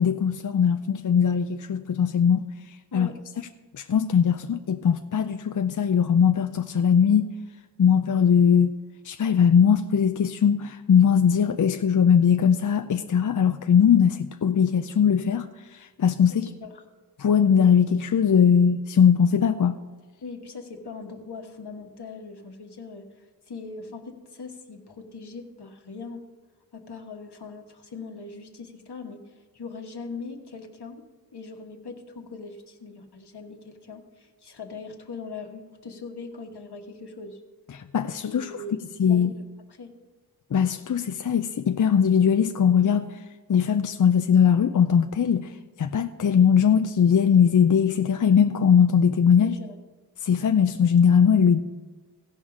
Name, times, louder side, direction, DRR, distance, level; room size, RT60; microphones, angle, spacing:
voice 1, 0.0-3.1 3.7-7.3 7.8-8.8 9.0-16.5 17.2-19.8 37.7-38.5 39.0-39.3 40.5-49.6 50.2-51.6, left 7 dB, 50° left, 0.5 m, -20 dB
voice 2, 16.3-16.7 20.2-23.1 23.5-26.2 26.7-29.2 29.5-31.1 31.3-37.4 38.3-38.8 39.1-39.4 39.8-39.9 49.4-49.7, left 4 dB, 75° left, 1.3 m, -40 dB
16.5 x 5.5 x 4.9 m
wide cardioid pair, 65°, 40 cm